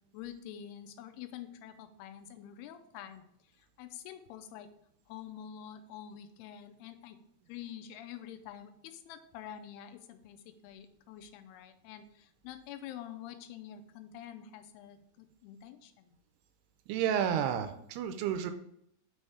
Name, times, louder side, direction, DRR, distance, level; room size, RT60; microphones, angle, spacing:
voice 1, 0.1-4.7 5.1-7.2 7.5-16.2, left 10 dB, 85° left, 8 dB, 2.6 m, -47 dB
voice 2, 16.9-18.5, right 9 dB, 85° right, 9 dB, 2.6 m, -31 dB
6.3 x 4.4 x 4.8 m, 0.73 s
omnidirectional pair, 4.6 m